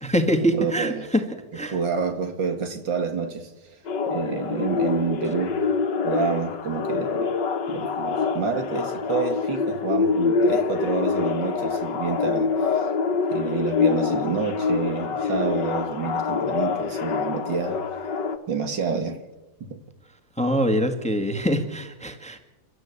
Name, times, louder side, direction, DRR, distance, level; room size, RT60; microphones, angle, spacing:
voice 1, 0.0-1.2 1.5-1.8 20.4-22.4, equal, 5° left, 1.7 m, -24 dB
voice 2, 0.5-1.1 1.5-3.5 4.1-5.6 6.0-7.3 7.7-12.9 13.3-17.8 18.5-19.2 19.6-19.8, right 6 dB, 75° right, 2.6 m, -28 dB
sound 1, 3.9-18.4, left 5 dB, 65° left, 2.0 m, -25 dB
29.5 x 12.5 x 8.4 m
omnidirectional pair, 2.1 m